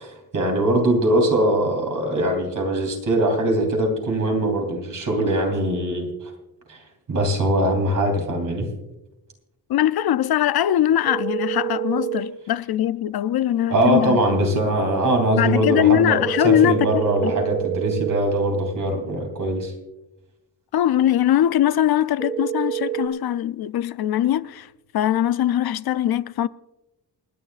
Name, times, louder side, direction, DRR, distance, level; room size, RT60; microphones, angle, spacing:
voice 1, 0.0-6.3 6.7-6.8 7.1-8.7 13.7-19.7, right 1 dB, 50° right, 3.0 m, -22 dB
voice 2, 9.7-14.4 15.4-17.3 20.7-24.7 24.9-26.5, left 11 dB, 70° left, 0.5 m, -21 dB
sound 1, 11.1-12.2 16.2-18.2 22.2-23.1, right 12 dB, 10° right, 1.5 m, -27 dB
28.5 x 9.9 x 2.4 m
wide cardioid pair, 165°, 39 cm